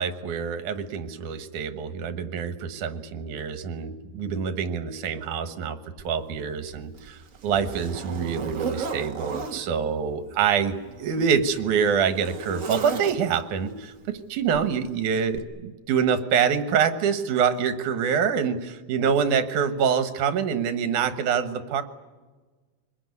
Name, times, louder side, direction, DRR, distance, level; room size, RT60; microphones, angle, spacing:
voice 1, 0.0-5.8 6.0-21.8, right 7 dB, 80° right, 10 dB, 2.8 m, -26 dB
Zipper (clothing), 6.0-6.1 6.7-9.6 10.6-13.5 14.5-14.7 15.3-15.4, right 5 dB, 45° right, 1.0 m, -35 dB
25.0 x 21.0 x 9.6 m, 1.3 s
omnidirectional pair, 3.5 m